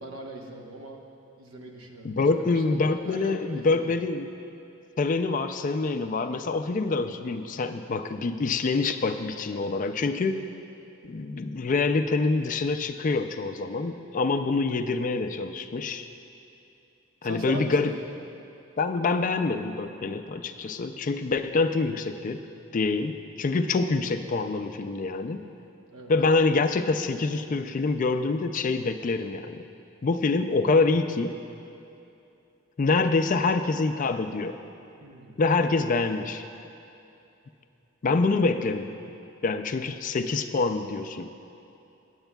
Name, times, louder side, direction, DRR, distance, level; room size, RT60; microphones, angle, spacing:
voice 1, 0.0-1.0 1.4-4.0 17.2-18.2 25.9-26.1 35.0-35.4, right 2 dB, 85° right, 1 dB, 1.1 m, -40 dB
voice 2, 2.0-4.3 5.0-10.5 11.0-16.1 17.2-17.9 18.8-22.4 22.7-25.4 26.1-29.6 30.0-31.3 32.8-34.6 35.4-36.4 38.0-38.9 39.4-41.3, left 3 dB, 40° left, 7 dB, 0.4 m, -26 dB
19.0 x 8.0 x 2.3 m, 2.8 s
head